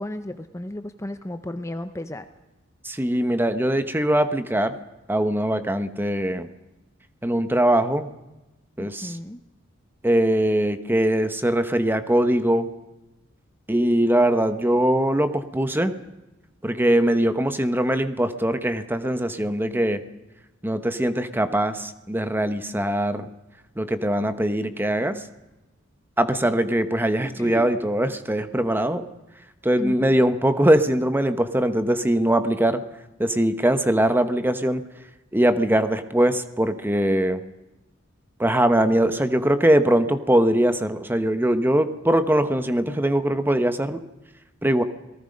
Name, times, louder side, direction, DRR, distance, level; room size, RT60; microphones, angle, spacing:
voice 1, 0.0-2.3 8.8-9.4 27.2-27.7 29.8-30.1, left 1 dB, 15° left, 9 dB, 0.7 m, -34 dB
voice 2, 2.8-4.7 5.1-6.5 7.2-8.1 8.8-9.2 10.0-12.7 13.7-15.9 16.6-20.0 20.6-23.3 23.8-25.2 26.2-29.1 29.6-32.8 33.2-34.8 35.3-37.4 38.4-44.0 44.6-44.8, right 1 dB, 10° right, 10 dB, 1.1 m, -21 dB
28.5 x 19.0 x 5.3 m, 1.0 s
head